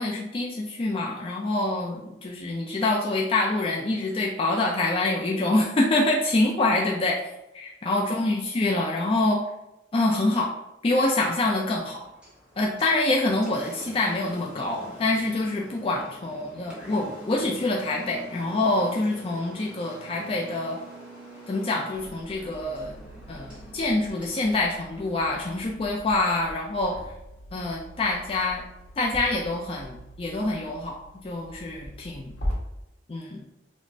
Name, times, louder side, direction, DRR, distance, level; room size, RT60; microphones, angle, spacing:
voice 1, 0.0-7.2 7.5-9.4 9.9-10.5 10.8-12.0 12.6-20.8 21.5-22.9 23.3-27.0 27.5-28.6 29.0-32.3 33.1-33.4, left 2 dB, 30° left, -1 dB, 0.3 m, -26 dB
Engine, 11.4-25.4, right 1 dB, 5° right, 0.6 m, -46 dB
sound 1, 21.9-32.5, equal, 70° left, 1.2 m, -41 dB
5.1 x 2.0 x 2.6 m, 0.89 s
head